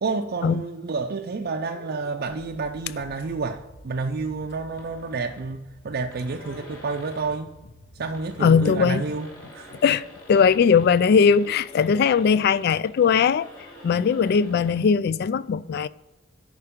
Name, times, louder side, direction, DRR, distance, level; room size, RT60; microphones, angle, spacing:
voice 1, 0.0-7.6 8.0-9.7, right 4 dB, 55° right, 0.5 m, -30 dB
sound 1, 1.0-10.4, left 1 dB, 75° left, 1.1 m, -50 dB
sound 2, 4.8-5.5 5.8-5.9 6.1-7.4 8.0-14.8, equal, 20° left, 3.0 m, -47 dB
voice 2, 8.4-9.0 9.8-10.0 10.3-13.5 13.8-15.9, left 6 dB, 55° left, 0.3 m, -19 dB
11.0 x 4.7 x 3.6 m
head